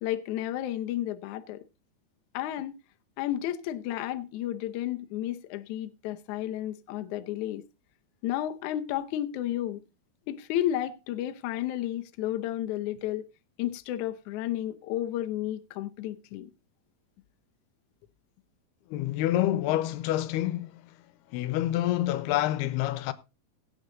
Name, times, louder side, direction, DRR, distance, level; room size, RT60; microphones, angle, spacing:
voice 1, 0.0-1.6 2.3-2.8 3.2-7.6 8.2-9.8 10.3-13.3 13.6-16.5, left 12 dB, 75° left, 1.8 m, -32 dB
voice 2, 18.9-20.8 21.3-23.1, left 14 dB, 90° left, 2.9 m, -27 dB
16.5 x 8.6 x 3.8 m
omnidirectional pair, 4.5 m